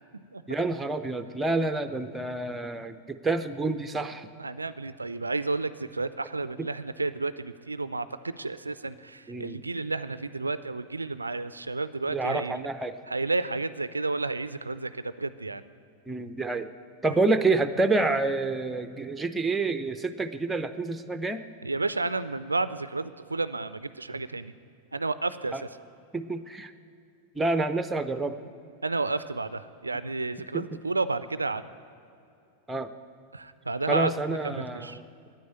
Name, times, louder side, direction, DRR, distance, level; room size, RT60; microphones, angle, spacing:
voice 1, 0.5-4.3 6.6-6.7 9.3-9.6 12.1-13.0 16.1-16.7 17.0-21.4 25.5-25.6 26.1-26.7 27.3-28.4 30.5-30.8 32.7-32.9 33.9-35.0, right 3 dB, 10° right, 10 dB, 0.6 m, -28 dB
voice 2, 4.4-12.7 13.1-15.6 21.6-24.5 24.9-25.5 28.8-31.6 33.3-34.1 34.4-35.0, right 3 dB, 80° right, 14 dB, 0.3 m, -31 dB
9.4 x 9.4 x 9.0 m, 2.6 s
figure-of-eight pair, 90°, 0 cm